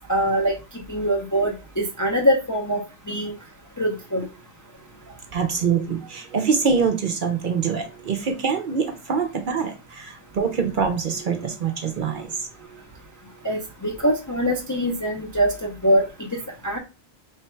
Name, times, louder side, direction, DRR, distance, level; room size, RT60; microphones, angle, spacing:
voice 1, 0.1-0.6 0.9-2.8 3.1-3.3 3.8-4.3 13.4-16.0 16.6-16.8, equal, 30° left, 0 dB, 0.4 m, -23 dB
voice 2, 5.1-12.5, right 6 dB, 55° right, 5 dB, 0.6 m, -25 dB
3.2 x 2.2 x 4.3 m, 0.29 s
omnidirectional pair, 1.1 m